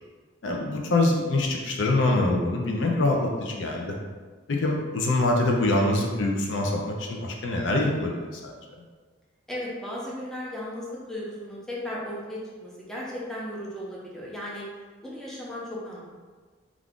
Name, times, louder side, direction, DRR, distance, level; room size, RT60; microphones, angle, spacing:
voice 1, 0.4-4.0 4.5-8.5, left 2 dB, 70° left, 0 dB, 0.4 m, -24 dB
voice 2, 9.5-14.6 15.0-16.0, left 1 dB, 5° left, -6 dB, 0.6 m, -36 dB
2.4 x 2.4 x 3.5 m, 1.4 s
head